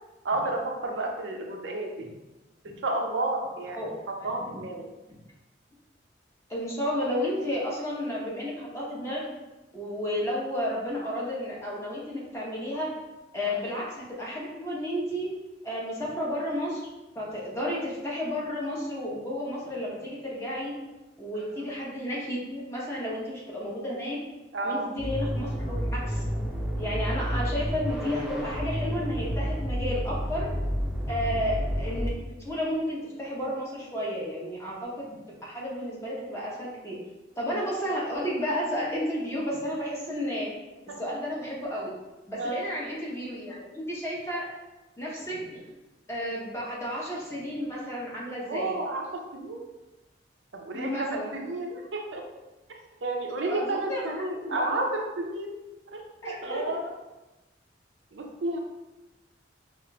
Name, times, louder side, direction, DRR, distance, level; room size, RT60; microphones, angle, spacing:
voice 1, 0.2-2.0 2.6-3.8 4.2-4.9 13.4-13.6 21.4-21.7 24.5-24.9 31.1-31.3 40.9-41.0 42.4-42.7 48.5-49.7 50.5-52.2 53.0-55.6 55.9-56.9 58.1-58.6, right 2 dB, 75° right, 1 dB, 0.5 m, -31 dB
voice 2, 6.5-9.3 9.7-12.9 13.3-15.3 15.6-16.9 17.1-20.7 21.2-24.2 24.6-26.2 26.7-30.5 31.1-32.1 32.4-37.0 37.4-40.5 41.0-41.9 42.3-44.5 45.0-45.6 46.1-48.8 50.7-51.3 53.5-54.7 56.2-56.8, equal, 15° left, -5 dB, 0.8 m, -32 dB
sound 1, 25.0-32.1, equal, 5° right, 0.4 m, -30 dB
5.0 x 2.5 x 2.2 m, 1.1 s
head